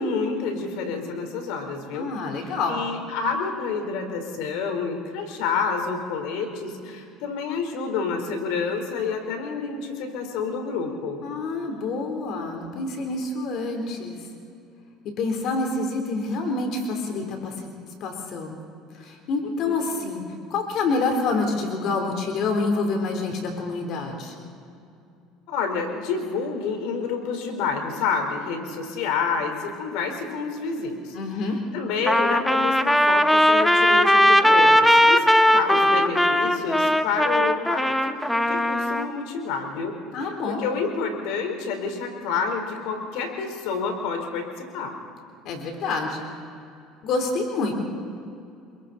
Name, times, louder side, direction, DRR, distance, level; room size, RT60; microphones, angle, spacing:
voice 1, 0.0-2.1 2.7-11.2 19.4-19.7 25.5-31.1 31.7-35.2 35.5-44.9, left 5 dB, 80° left, 4 dB, 4.3 m, -29 dB
voice 2, 1.9-2.8 11.2-14.2 15.2-17.7 18.0-18.6 18.9-20.2 20.5-24.3 31.1-31.6 40.1-40.6 45.4-46.3 47.0-47.7, left 3 dB, 60° left, 3 dB, 3.9 m, -27 dB
Trumpet, 32.1-39.1, equal, 5° left, 1.1 m, -18 dB
29.5 x 22.5 x 4.3 m, 2.5 s
supercardioid pair, 100°, 0 cm